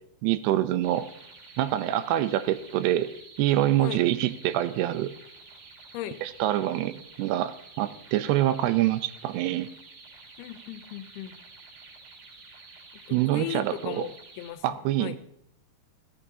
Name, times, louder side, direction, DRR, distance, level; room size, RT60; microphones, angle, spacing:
voice 1, 0.2-1.1 1.6-3.1 3.4-5.1 6.2-9.7 13.1-14.1 14.6-15.2, right 13 dB, 85° right, 12 dB, 2.7 m, -25 dB
sound 1, 0.8-14.5, right 3 dB, 65° right, 4.6 m, -50 dB
voice 2, 10.4-11.4 13.1-15.2, left 13 dB, 80° left, 12 dB, 2.7 m, -37 dB
17.5 x 14.0 x 2.8 m, 0.75 s
omnidirectional pair, 4.6 m